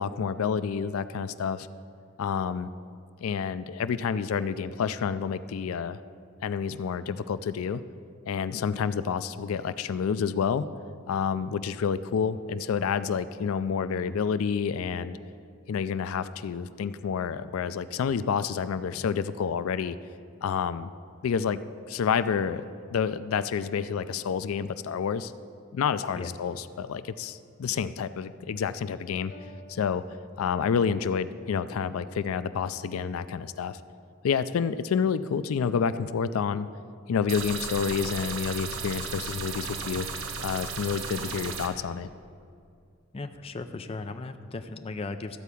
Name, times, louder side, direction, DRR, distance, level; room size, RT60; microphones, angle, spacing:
voice 1, 0.0-1.7 2.2-2.7 3.2-6.0 6.4-7.8 8.3-10.6 11.1-15.2 15.7-20.0 20.4-20.9 21.2-21.6 21.9-22.6 22.9-25.3 25.7-29.3 29.7-30.0 30.4-33.8 34.2-36.7 37.1-40.1 40.4-42.1, left 6 dB, 90° left, 14 dB, 0.4 m, -29 dB
sound 1, 26.1-27.6 29.3-30.8, left 1 dB, 60° left, 0.9 m, -54 dB
sound 2, 37.3-41.7, right 5 dB, 75° right, 1.0 m, -35 dB
voice 2, 43.1-45.4, left 3 dB, 30° left, 8 dB, 0.4 m, -37 dB
13.5 x 4.6 x 8.3 m, 2.4 s
head